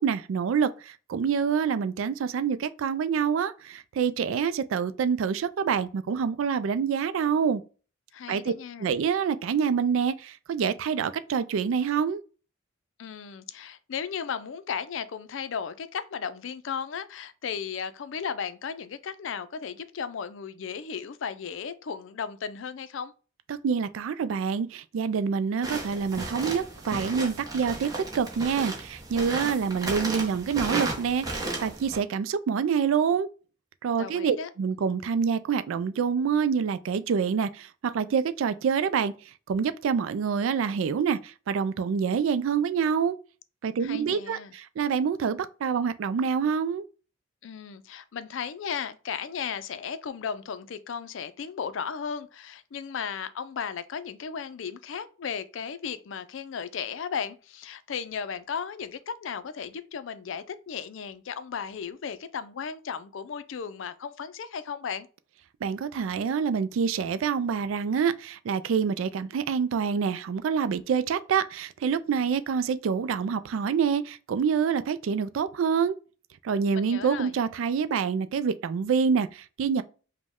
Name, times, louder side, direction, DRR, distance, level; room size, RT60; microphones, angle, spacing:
voice 1, 0.0-7.6 8.3-8.5 8.8-12.2 23.5-33.3 33.8-39.1 39.5-43.2 43.6-46.8 65.6-76.0 76.4-79.8, right 6 dB, 80° right, 0.3 m, -26 dB
voice 2, 8.1-8.9 13.0-23.1 34.0-34.5 43.8-44.5 47.4-65.1 76.7-77.3, left 6 dB, 70° left, 0.4 m, -35 dB
sound 1, 25.6-32.0, right 2 dB, 20° right, 0.9 m, -34 dB
5.1 x 2.2 x 3.5 m
head